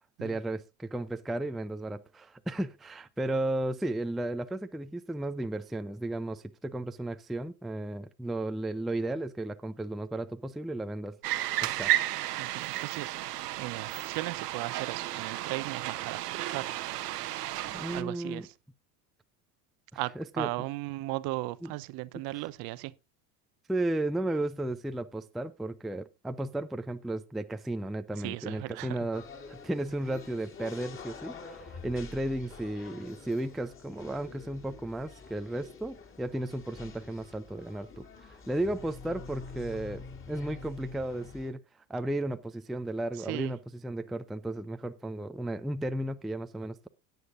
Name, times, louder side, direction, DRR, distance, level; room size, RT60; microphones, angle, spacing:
voice 1, 0.2-11.2 11.6-11.9 17.7-18.5 19.9-20.5 21.6-21.7 23.7-41.6 41.9-46.9, right 1 dB, ahead, 0.4 m, -34 dB
sound 1, 11.2-18.0, right 14 dB, 70° right, 1.1 m, -33 dB
voice 2, 12.4-13.1 13.6-16.7 17.9-18.5 19.9-22.9 28.1-29.1 43.2-43.5, right 20 dB, 50° right, 0.8 m, -36 dB
sound 2, 29.1-41.5, left 4 dB, 25° left, 2.7 m, -47 dB
16.5 x 9.4 x 2.5 m
figure-of-eight pair, 70°, 48 cm